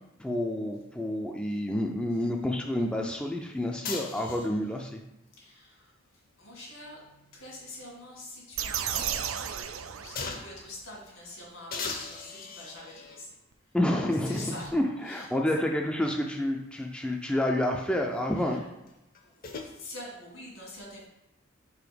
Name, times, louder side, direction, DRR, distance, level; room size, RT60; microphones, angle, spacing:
voice 1, 0.2-5.0 13.7-18.6, left 1 dB, 5° left, 1 dB, 0.4 m, -29 dB
sound 1, 3.8-4.8 6.6-8.1 8.5-8.6 10.2-10.7 11.7-13.3 14.2-14.3 18.9-19.7, left 4 dB, 45° left, 0.8 m, -39 dB
voice 2, 5.4-5.9 6.4-7.0 7.3-9.2 9.9-13.4 14.3-14.7 15.0-15.3 18.4-18.7 19.2-21.0, left 1 dB, 75° left, -2 dB, 2.2 m, -45 dB
sound 2, 8.6-10.7, right 8 dB, 85° right, 0.5 m, -33 dB
4.9 x 3.9 x 5.1 m, 0.93 s
head